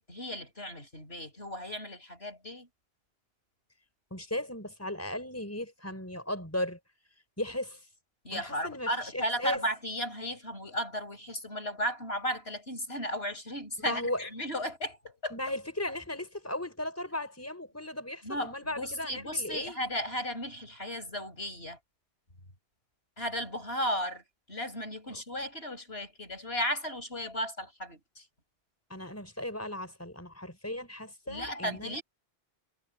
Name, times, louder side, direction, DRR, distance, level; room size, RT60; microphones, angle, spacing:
voice 1, 0.0-2.7 8.2-15.4 18.2-21.8 23.2-28.3 31.3-32.0, equal, 80° left, 8.2 m, -35 dB
voice 2, 4.1-6.8 7.4-7.9 8.3-9.6 13.9-14.2 15.3-19.8 28.9-32.0, left 1 dB, 15° left, 5.2 m, -36 dB
omnidirectional pair, 1.0 m